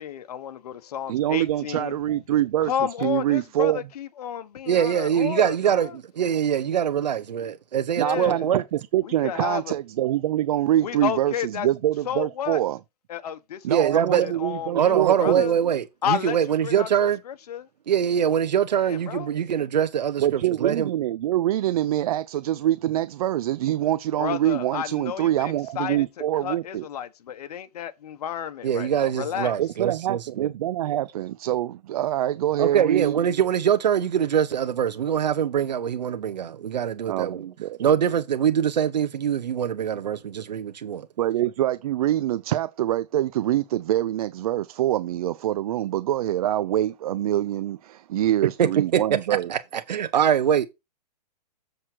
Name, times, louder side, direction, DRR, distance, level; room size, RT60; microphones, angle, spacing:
voice 1, 0.0-2.0 2.6-5.9 8.0-8.4 9.0-9.7 10.8-11.7 12.1-12.6 13.1-13.6 13.9-15.5 16.0-16.4 16.6-17.7 18.9-19.3 24.2-26.0 26.4-29.5, left 9 dB, 65° left, 1.4 m, -31 dB
voice 2, 1.1-3.9 8.0-12.8 13.6-15.4 20.2-26.9 29.6-33.2 37.1-37.3 37.6-37.8 41.2-49.5, right 13 dB, 60° right, 0.6 m, -25 dB
voice 3, 4.7-8.6 13.7-14.3 14.7-17.2 17.9-20.9 28.6-30.5 32.6-37.5 37.8-41.1 48.6-49.0 49.5-50.6, right 9 dB, 85° right, 1.1 m, -23 dB
7.4 x 6.6 x 4.6 m
hypercardioid pair, 145°, 21 cm